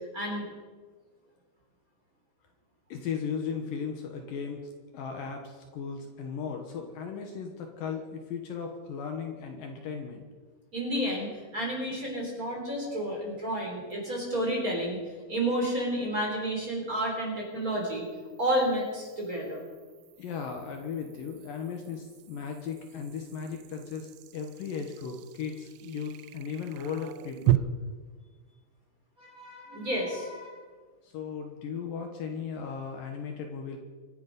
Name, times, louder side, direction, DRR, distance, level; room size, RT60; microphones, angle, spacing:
voice 1, 0.1-0.5 10.7-15.0 15.3-18.1 18.4-19.6 29.2-30.6, right 1 dB, 20° right, -1 dB, 3.5 m, -31 dB
voice 2, 2.9-10.3 20.2-27.6 31.0-33.8, left 6 dB, 65° left, 3 dB, 2.7 m, -36 dB
sound 1, 13.9-14.0 17.4-27.6, right 16 dB, 85° right, 2.6 m, -37 dB
25.5 x 10.5 x 5.3 m, 1.4 s
omnidirectional pair, 4.7 m